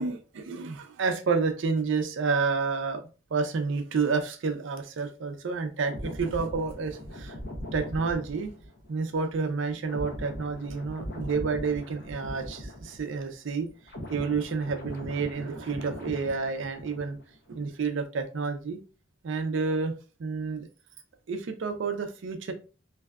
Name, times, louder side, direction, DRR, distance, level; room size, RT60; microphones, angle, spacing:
voice 1, 0.0-3.0 3.3-7.4 7.7-8.5 8.9-13.7 14.1-17.2 17.5-18.8 19.2-19.9 20.2-20.7 21.3-22.5, right 4 dB, 60° right, 7 dB, 0.4 m, -29 dB
sound 1, 5.9-13.4 13.6-17.3 17.6-17.9, equal, 50° left, 0.6 m, -40 dB
2.6 x 2.2 x 2.2 m, 0.34 s
head